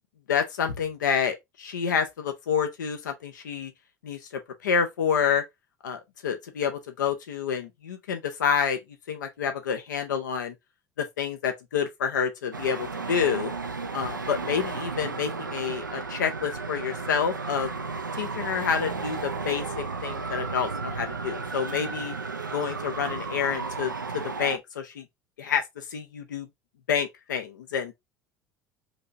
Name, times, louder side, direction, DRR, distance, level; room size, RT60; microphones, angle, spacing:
voice 1, 0.3-3.7 4.0-4.2 4.6-5.4 5.8-8.8 9.1-10.5 11.0-13.5 13.9-17.7 18.2-22.1 22.5-25.0 25.4-25.6 25.9-26.5 26.9-27.9, left 7 dB, 70° left, 0.6 m, -28 dB
Traffic noise roadway noise, 12.5-24.6, right 4 dB, 85° right, 0.4 m, -33 dB
3.0 x 2.7 x 3.2 m
figure-of-eight pair, 65°, 10 cm